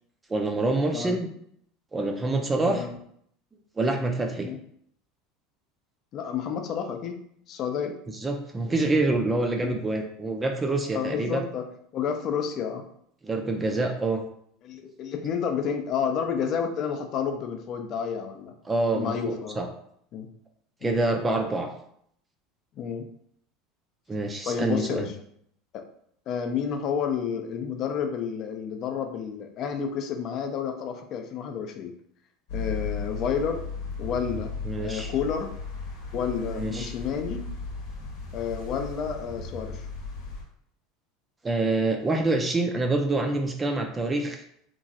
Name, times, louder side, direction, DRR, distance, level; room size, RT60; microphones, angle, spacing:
voice 1, 0.3-1.3 1.9-2.8 3.8-4.5 8.1-11.4 13.2-14.2 18.7-19.7 20.8-21.7 24.1-25.1 34.7-35.1 36.5-36.9 41.4-44.4, right 2 dB, 15° right, 3 dB, 0.4 m, -26 dB
voice 2, 6.1-7.2 7.5-8.0 9.6-9.8 10.9-11.7 11.9-12.8 14.6-18.5 18.9-19.6 20.1-20.3 20.8-21.0 22.8-23.1 24.5-25.1 25.7-25.9 26.3-31.9 32.5-33.6 34.0-34.5 34.8-35.5 36.1-37.4 38.3-39.9, left 7 dB, 45° left, 5 dB, 0.4 m, -30 dB
sound 1, 32.5-40.4, left 4 dB, 75° left, 0.9 m, -36 dB
2.9 x 2.4 x 2.6 m, 0.68 s
supercardioid pair, 120°, 0 cm